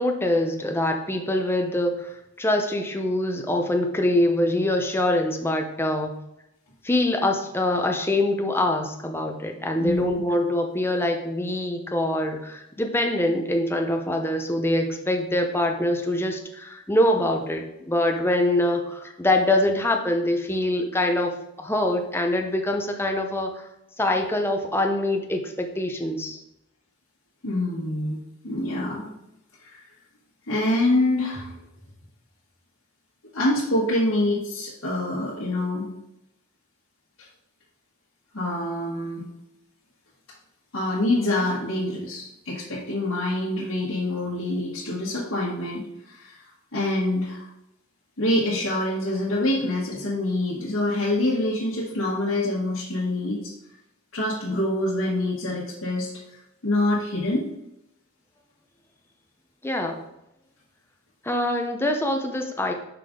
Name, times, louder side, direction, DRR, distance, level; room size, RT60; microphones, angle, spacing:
voice 1, 0.0-6.1 6.8-21.3 21.6-23.7 24.0-26.4 59.6-60.0 61.2-62.7, left 1 dB, 10° left, 3 dB, 0.6 m, -24 dB
voice 2, 9.8-10.1 27.4-28.2 28.4-29.1 29.6-29.8 30.5-31.5 33.3-35.9 38.3-39.2 40.7-45.8 46.1-46.4 46.7-47.4 48.2-53.5 54.1-56.1 56.6-57.4, left 1 dB, 75° left, -8 dB, 1.4 m, -25 dB
5.9 x 5.1 x 3.7 m, 0.85 s
head